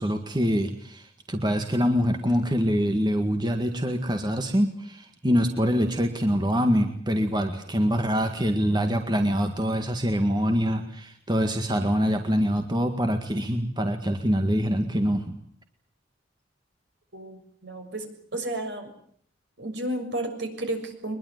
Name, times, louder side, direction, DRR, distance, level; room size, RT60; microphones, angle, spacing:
voice 1, 0.0-15.4, equal, 25° right, 6 dB, 1.9 m, -25 dB
voice 2, 17.1-18.9 19.6-21.2, right 1 dB, 65° right, 6 dB, 6.7 m, -32 dB
23.5 x 21.5 x 9.5 m, 0.63 s
head